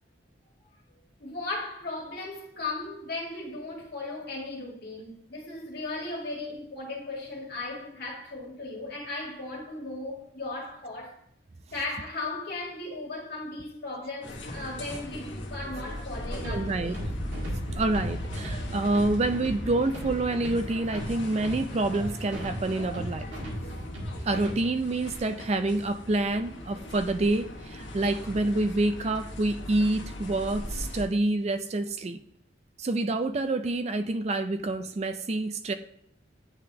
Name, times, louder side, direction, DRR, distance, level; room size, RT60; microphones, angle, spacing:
voice 1, 1.2-11.2 11.7-17.0, left 2 dB, 55° left, 1.8 m, -36 dB
sound 1, 14.2-31.1, left 1 dB, 75° left, 1.3 m, -40 dB
sound 2, 16.1-24.5, equal, 85° right, 1.7 m, -37 dB
voice 2, 16.4-17.0 17.7-23.2 24.2-32.2 32.8-35.7, right 2 dB, 35° right, 0.4 m, -27 dB
9.7 x 3.5 x 2.8 m
head